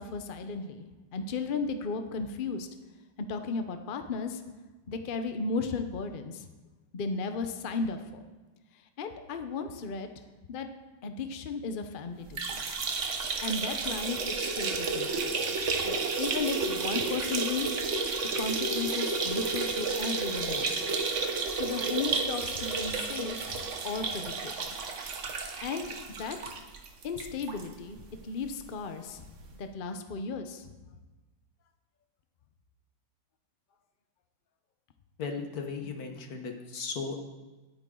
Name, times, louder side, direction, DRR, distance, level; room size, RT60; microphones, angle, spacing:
voice 1, 0.0-2.7 3.3-4.4 4.9-6.5 6.9-8.2 8.7-10.1 10.5-10.7 11.0-12.8 13.4-17.8 18.4-20.9 21.5-24.8 25.6-25.9 26.2-26.5 27.0-28.0 28.2-29.3 29.6-30.7, left 4 dB, 80° left, 7 dB, 0.4 m, -35 dB
sound 1, 12.3-27.7 28.0-28.1 28.4-28.5 29.5-29.6, right 4 dB, 45° right, 1.1 m, -31 dB
voice 2, 35.2-37.2, left 5 dB, 50° left, 4 dB, 1.6 m, -36 dB
18.0 x 8.9 x 3.8 m, 1.2 s
omnidirectional pair, 2.2 m